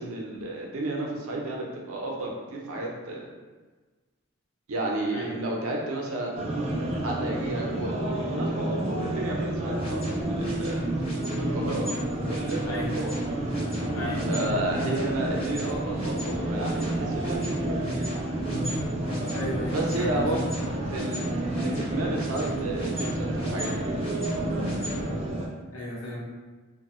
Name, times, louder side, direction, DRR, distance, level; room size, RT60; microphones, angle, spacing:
voice 1, 0.0-3.2 4.7-6.5 7.0-10.8 11.4-11.9 12.3-13.2 14.3-18.1 19.7-20.5 20.9-21.2 21.6-24.1, right 2 dB, 80° right, -1 dB, 0.6 m, -32 dB
sound 1, 6.4-25.5, right 1 dB, 30° right, 0.3 m, -29 dB
sound 2, 9.7-25.0, equal, 25° left, 0.7 m, -41 dB
voice 2, 13.9-14.3 19.3-20.2 25.7-26.2, left 1 dB, 90° left, -4 dB, 0.8 m, -34 dB
2.9 x 2.2 x 3.0 m, 1.3 s
head